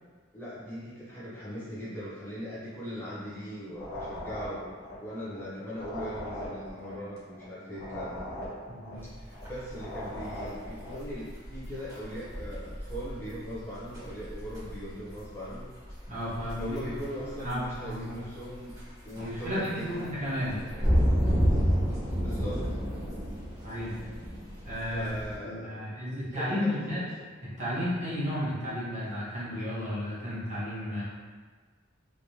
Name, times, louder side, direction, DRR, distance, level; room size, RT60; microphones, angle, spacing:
voice 1, 0.3-4.7 5.0-8.2 9.2-15.7 16.6-18.8 19.0-20.0 22.2-22.8 24.9-26.0 26.3-27.0, equal, 10° left, -10 dB, 0.7 m, -40 dB
sound 1, 3.7-11.1, left 1 dB, 55° left, 1.2 m, -40 dB
voice 2, 8.7-9.0 16.1-16.8 17.4-18.2 19.2-20.6 23.6-23.9 24.6-25.2 25.4-27.0 27.4-31.0, equal, 40° right, -10 dB, 1.3 m, -33 dB
sound 2, 9.0-25.4, equal, 20° right, 1.2 m, -31 dB
3.2 x 3.2 x 2.8 m, 1.5 s
head